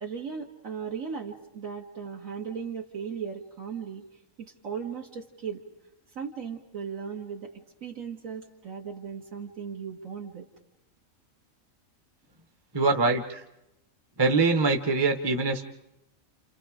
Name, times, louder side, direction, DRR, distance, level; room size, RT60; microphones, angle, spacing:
voice 1, 0.0-4.1 4.4-5.6 6.2-10.5, right 6 dB, 70° right, -2 dB, 2.0 m, -37 dB
voice 2, 12.7-13.4 14.2-15.7, right 3 dB, 20° right, 6 dB, 0.9 m, -23 dB
30.0 x 28.5 x 5.0 m, 0.88 s
omnidirectional pair, 1.4 m